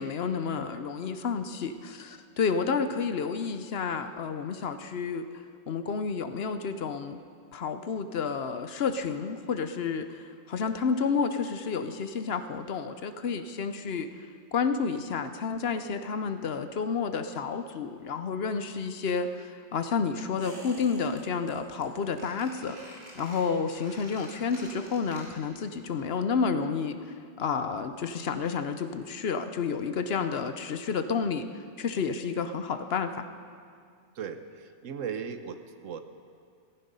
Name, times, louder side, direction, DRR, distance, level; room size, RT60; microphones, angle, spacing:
voice 1, 0.0-5.2 5.7-7.2 7.5-14.1 14.5-22.8 23.2-27.0 27.4-31.5 31.8-33.3, left 5 dB, 60° left, 9 dB, 0.9 m, -30 dB
Squeak, 20.4-21.2 21.5-21.9 22.2-25.6 25.8-25.9, right 1 dB, 65° right, 3.3 m, -48 dB
voice 2, 34.2-36.0, right 7 dB, 90° right, 9 dB, 1.2 m, -37 dB
15.0 x 15.0 x 5.4 m, 2.2 s
omnidirectional pair, 1.3 m